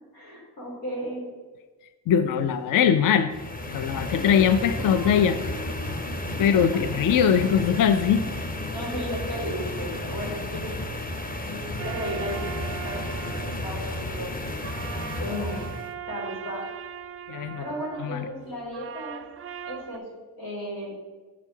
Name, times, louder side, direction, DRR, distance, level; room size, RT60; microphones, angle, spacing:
voice 1, 0.1-1.2 7.3-7.6 8.6-10.7 11.4-14.4 15.2-15.7 16.1-16.7 17.6-19.2 19.6-20.1 20.4-20.9, equal, 90° left, -4 dB, 2.1 m, -35 dB
voice 2, 2.1-3.3 3.7-5.4 6.4-8.3 17.3-17.6 18.0-18.3, left 8 dB, 45° left, 11 dB, 0.5 m, -21 dB
sound 1, 2.3-7.8, equal, 65° left, 1.9 m, -42 dB
sound 2, 3.3-15.9, left 1 dB, 20° left, 0.8 m, -33 dB
sound 3, 11.8-20.0, right 10 dB, 30° right, 0.4 m, -40 dB
6.1 x 4.4 x 5.8 m, 1.3 s
hypercardioid pair, 45°, 46 cm